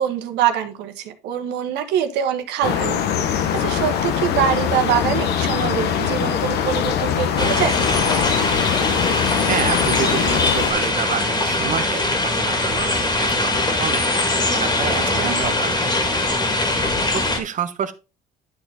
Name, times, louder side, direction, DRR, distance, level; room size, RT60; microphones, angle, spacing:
voice 1, 0.0-3.0 3.3-7.7 15.1-15.4, right 9 dB, 90° right, 1.4 m, -24 dB
sound 1, 2.6-10.7, left 9 dB, 80° left, 1.2 m, -22 dB
sound 2, 7.4-17.4, left 2 dB, 25° left, 2.2 m, -21 dB
voice 2, 9.5-14.1 14.5-16.2 17.1-17.9, right 8 dB, 50° right, 1.1 m, -28 dB
11.0 x 4.3 x 3.8 m
cardioid pair, 110°, 17 cm